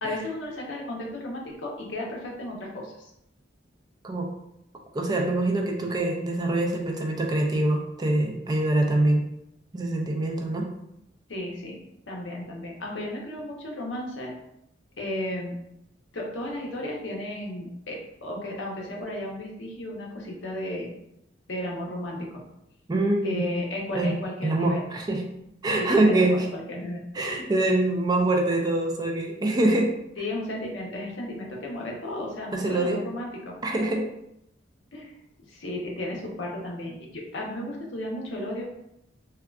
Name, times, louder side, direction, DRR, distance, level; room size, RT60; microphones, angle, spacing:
voice 1, 0.0-3.1 11.3-11.8 12.1-14.3 15.0-15.6 16.1-20.9 21.5-22.3 23.2-24.8 25.8-27.0 30.2-33.5 34.9-35.2 35.5-38.6, left 1 dB, 70° left, -1 dB, 0.7 m, -34 dB
voice 2, 4.9-9.2 9.7-10.7 22.9-23.5 23.9-24.2 24.4-25.2 25.6-26.5 27.1-29.9 32.5-33.0 33.6-34.1, right 2 dB, 20° right, 1 dB, 0.4 m, -24 dB
3.6 x 2.2 x 2.3 m, 0.80 s
head